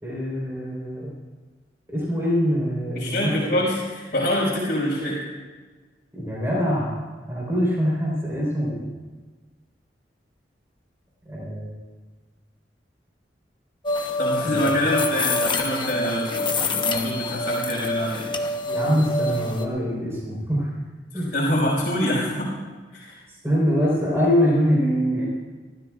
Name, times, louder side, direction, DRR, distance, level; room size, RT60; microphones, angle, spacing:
voice 1, 0.0-1.1 1.9-3.6 6.1-8.9 11.3-11.8 14.4-14.9 18.6-20.7 21.1-21.3 23.4-25.3, equal, 15° right, -5 dB, 4.2 m, -24 dB
voice 2, 2.9-5.3 14.2-18.3 21.1-22.5 22.9-23.2, left 1 dB, 50° left, -8 dB, 5.0 m, -25 dB
sound 1, 13.8-19.7, left 2 dB, 25° left, 1.0 m, -26 dB
27.5 x 14.0 x 2.5 m, 1.4 s
head